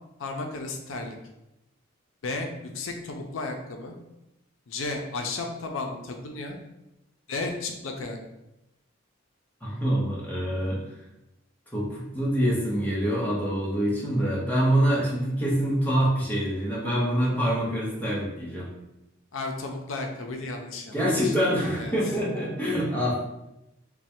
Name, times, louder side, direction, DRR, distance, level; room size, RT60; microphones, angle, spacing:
voice 1, 0.2-1.2 2.2-2.5 2.7-3.9 4.7-6.6 7.3-8.2 19.3-20.9 21.2-21.3 21.7-21.9, left 3 dB, 90° left, 3 dB, 0.5 m, -33 dB
voice 2, 9.6-10.8 11.7-18.7 20.9-23.2, equal, 10° left, -6 dB, 1.1 m, -25 dB
3.2 x 2.2 x 4.3 m, 0.89 s
head